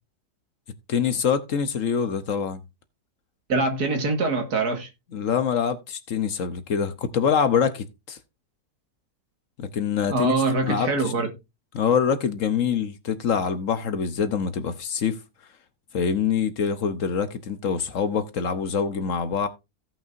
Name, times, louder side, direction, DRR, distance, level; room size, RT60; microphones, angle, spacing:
voice 1, 0.9-2.6 5.1-8.2 9.6-10.3 10.7-11.1 11.7-15.2 15.9-19.5, left 7 dB, 60° left, 1.2 m, -25 dB
voice 2, 3.5-4.9 10.1-11.3, right 3 dB, 75° right, 2.2 m, -24 dB
16.0 x 5.8 x 2.6 m
omnidirectional pair, 1.7 m